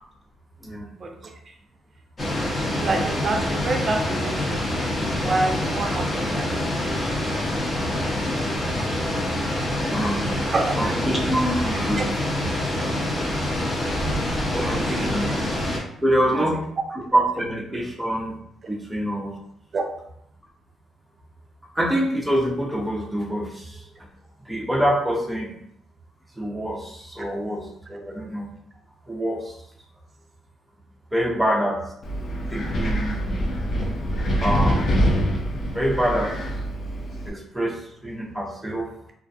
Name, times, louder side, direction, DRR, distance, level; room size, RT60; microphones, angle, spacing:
sound 1, 2.2-15.8, left 1 dB, 30° left, 1.0 m, -26 dB
voice 1, 2.5-7.1 10.4-10.7 12.0-12.1 15.0-15.4 16.2-16.6 19.7-19.8, right 3 dB, 40° right, 3 dB, 0.5 m, -28 dB
voice 2, 9.6-10.3 10.8-12.2 14.5-15.4 16.0-16.6 17.1-18.4 18.7-19.4 21.7-23.9 24.5-25.6 26.4-28.5 29.1-29.6 31.1-31.8 32.5-33.2 34.4-34.9 35.7-36.3 37.3-38.9, right 1 dB, 5° right, -3 dB, 0.7 m, -25 dB
Wind, 32.0-37.3, equal, 50° left, 0.4 m, -25 dB
2.5 x 2.1 x 2.6 m, 0.71 s
cardioid pair, 90°, 0 cm